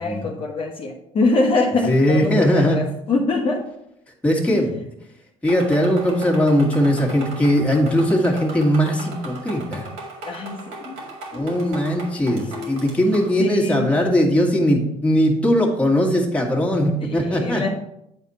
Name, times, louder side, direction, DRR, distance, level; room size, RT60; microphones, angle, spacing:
voice 1, 0.0-3.6 10.2-12.8 13.4-13.9 17.0-17.7, left 2 dB, 40° left, 0 dB, 1.0 m, -24 dB
voice 2, 1.9-2.8 4.2-4.7 5.4-9.9 11.3-17.7, equal, 10° left, -1 dB, 1.7 m, -19 dB
sound 1, 5.5-13.4, right 2 dB, 85° right, 2.1 m, -37 dB
9.0 x 4.2 x 4.1 m, 0.79 s
cardioid pair, 105°, 14 cm